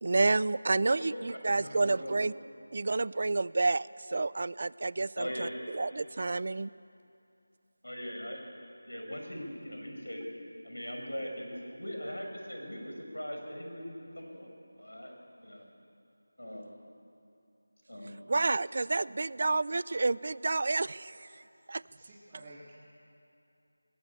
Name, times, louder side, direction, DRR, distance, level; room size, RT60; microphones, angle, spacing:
voice 1, 0.0-2.3 2.7-6.7 18.3-21.2 21.7-21.8, right 3 dB, 45° right, 20 dB, 0.4 m, -29 dB
voice 2, 1.6-2.2 5.2-5.6 7.8-8.4 8.9-10.2 10.6-14.5 14.8-15.7 16.4-16.8 17.9-18.2, equal, 90° left, 2 dB, 5.6 m, -40 dB
voice 3, 21.8-22.7, right 2 dB, 20° right, -6 dB, 2.0 m, -52 dB
21.5 x 18.5 x 8.5 m, 2.6 s
figure-of-eight pair, 170°, 0 cm